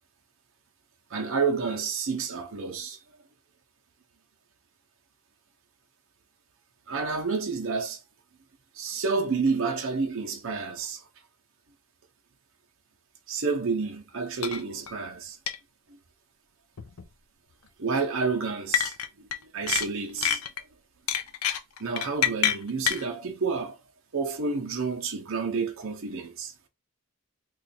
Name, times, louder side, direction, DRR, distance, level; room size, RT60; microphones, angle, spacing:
voice 1, 1.1-3.0 6.9-8.0 8.8-11.0 13.3-15.4 17.8-18.9 19.2-19.3 19.5-20.4 21.8-23.8 24.1-26.5, right 4 dB, 60° right, 0.7 m, -29 dB
sound 1, 14.4-14.6 14.9-15.0 15.5-15.6 16.8-17.0 18.7-19.4 19.7-20.6 21.1-23.0, left 9 dB, 80° left, 0.6 m, -26 dB
3.1 x 2.5 x 4.2 m
head